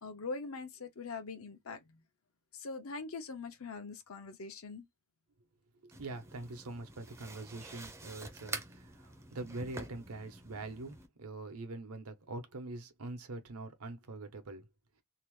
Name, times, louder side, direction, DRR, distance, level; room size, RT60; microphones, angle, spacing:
voice 1, 0.0-2.0 2.5-4.9, left 4 dB, 70° left, 0.7 m, -42 dB
voice 2, 5.8-14.7, right 2 dB, 85° right, 0.9 m, -44 dB
sound 1, 5.9-11.1, right 2 dB, 15° right, 0.4 m, -47 dB
2.8 x 2.1 x 3.1 m
head